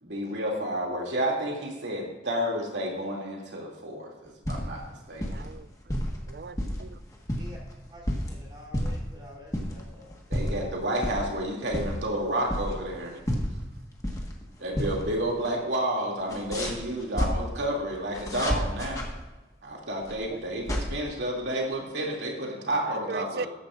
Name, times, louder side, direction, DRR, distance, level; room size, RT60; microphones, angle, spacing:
voice 1, 0.0-5.4 10.3-13.2 14.6-19.1 19.6-23.5, right 1 dB, 90° right, -1 dB, 2.7 m, -30 dB
sound 1, 4.2-4.9 5.2-5.5 5.9-6.8 7.1-8.3 8.7-9.1 9.5-9.8 10.1-10.6 11.0-11.2 11.6-13.0 13.3-14.4 14.7-15.0 15.3-15.4 16.3-17.3 18.1-19.1 20.0-20.8, equal, 20° left, 1.5 m, -30 dB
voice 2, 5.3-5.7 6.3-7.0 12.7-13.0 20.3-20.4 22.9-23.5, right 5 dB, 60° right, 14 dB, 0.3 m, -38 dB
voice 3, 7.9-10.1, left 1 dB, 25° right, -4 dB, 3.6 m, -48 dB
13.5 x 11.0 x 2.5 m, 1.2 s
head